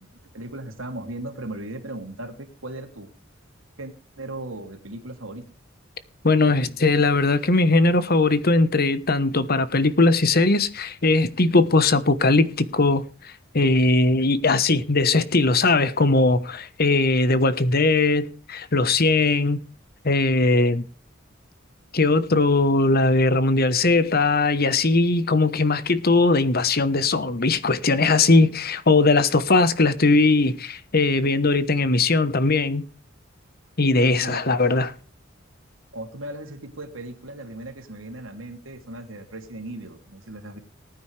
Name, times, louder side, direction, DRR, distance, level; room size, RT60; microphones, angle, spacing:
voice 1, 0.3-3.1 3.8-5.4 34.2-34.6 35.9-40.6, right 1 dB, 80° right, 2.9 m, -37 dB
voice 2, 6.2-13.0 13.5-19.6 20.0-20.8 21.9-32.8 33.8-34.9, left 3 dB, 50° left, 1.2 m, -19 dB
19.5 x 9.4 x 3.4 m
head